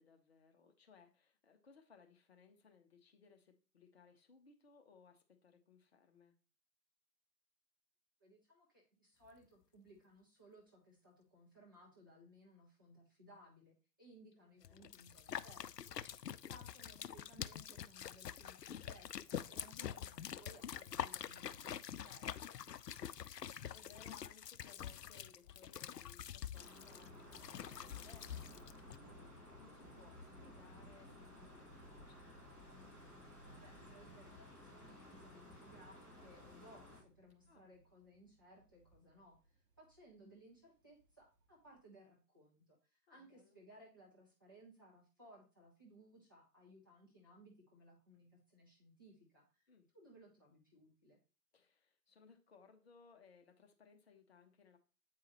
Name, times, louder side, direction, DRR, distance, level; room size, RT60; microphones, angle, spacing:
voice 1, 0.0-6.4 14.4-14.9 17.5-17.6 23.1-32.3 37.5-37.7 43.1-43.6 49.7-49.9 51.5-54.8, left 5 dB, 40° left, 5 dB, 1.0 m, -65 dB
voice 2, 8.2-22.4 33.6-51.2, equal, 15° right, -5 dB, 0.6 m, -62 dB
sound 1, 14.6-29.0, left 9 dB, 75° left, 0.5 m, -46 dB
sound 2, 26.0-41.8, right 2 dB, 55° right, 2.2 m, -63 dB
sound 3, 26.5-37.0, left 2 dB, 5° left, 1.3 m, -57 dB
8.3 x 4.7 x 2.9 m, 0.35 s
figure-of-eight pair, 135°, 49 cm